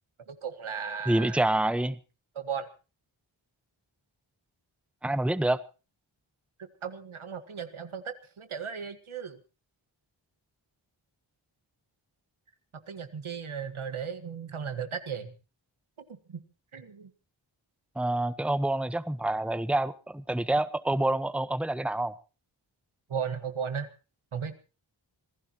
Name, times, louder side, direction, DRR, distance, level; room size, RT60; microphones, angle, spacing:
voice 1, 0.3-1.4 2.3-2.7 6.8-9.4 12.9-15.3 16.1-16.4 16.7-17.1 23.1-23.9 24.3-24.5, right 7 dB, 85° right, 1.8 m, -36 dB
voice 2, 1.1-2.0 5.0-5.6 18.0-22.1, right 1 dB, ahead, 1.0 m, -27 dB
26.0 x 16.0 x 3.0 m
cardioid pair, 50°, 48 cm